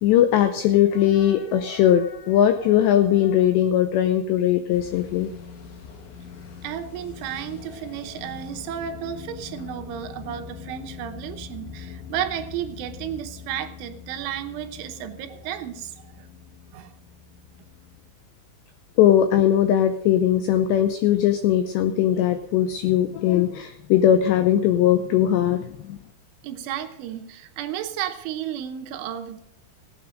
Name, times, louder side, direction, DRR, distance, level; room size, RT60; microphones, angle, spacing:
voice 1, 0.0-5.3 19.0-26.0, left 10 dB, 85° left, 9 dB, 2.5 m, -20 dB
sound 1, 4.7-18.1, left 6 dB, 55° left, 2.3 m, -42 dB
voice 2, 6.6-15.9 16.2-16.3 16.7-16.9 26.4-29.4, right 10 dB, 75° right, 6 dB, 3.3 m, -33 dB
17.5 x 9.1 x 5.1 m, 0.79 s
omnidirectional pair, 5.8 m